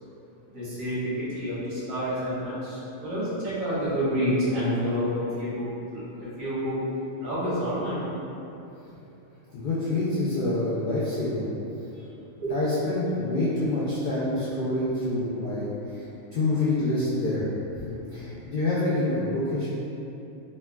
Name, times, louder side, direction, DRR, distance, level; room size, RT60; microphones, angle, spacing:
voice 1, 0.5-5.7 5.9-6.8 7.2-8.0 11.9-12.0 12.4-12.5, equal, 80° right, -10 dB, 1.5 m, -28 dB
voice 2, 9.5-11.4 12.5-16.0 16.3-17.4 17.9-19.7, left 2 dB, 70° left, -9 dB, 0.4 m, -27 dB
4.0 x 2.1 x 2.2 m, 2.9 s
omnidirectional pair, 1.4 m